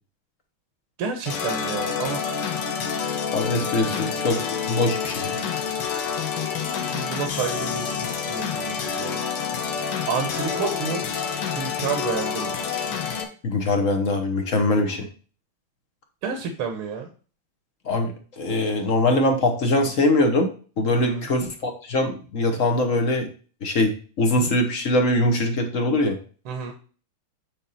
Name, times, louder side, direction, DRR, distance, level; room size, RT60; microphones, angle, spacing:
voice 1, 1.0-2.2 5.9-6.1 6.9-9.2 10.1-11.1 11.6-12.5 16.2-17.1 20.9-21.3 26.5-26.7, right 6 dB, 75° right, 4 dB, 1.9 m, -30 dB
sound 1, 1.3-13.2, left 6 dB, 85° left, 2.0 m, -28 dB
voice 2, 3.3-4.4 4.7-5.4 13.4-15.1 17.8-20.5 20.8-23.3 23.6-26.2, left 2 dB, 45° left, 4 dB, 1.3 m, -22 dB
8.8 x 4.1 x 4.0 m, 0.38 s
omnidirectional pair, 2.4 m